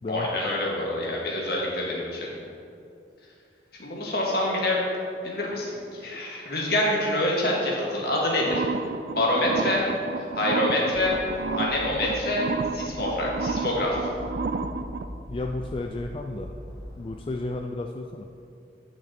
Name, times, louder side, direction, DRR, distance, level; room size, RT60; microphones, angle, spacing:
voice 1, 0.1-2.3 3.8-4.8 5.2-8.6 9.1-9.8 10.4-11.1 11.5-12.5 12.7-14.0, left 1 dB, 60° left, -3 dB, 1.8 m, -26 dB
sound 1, 8.4-15.0, right 4 dB, 55° right, 0.3 m, -31 dB
sound 2, 10.9-17.3, equal, 10° left, 2.2 m, -41 dB
voice 2, 15.3-16.5 17.0-18.3, left 2 dB, 30° left, 3 dB, 0.3 m, -32 dB
10.5 x 5.9 x 4.3 m, 2.5 s
head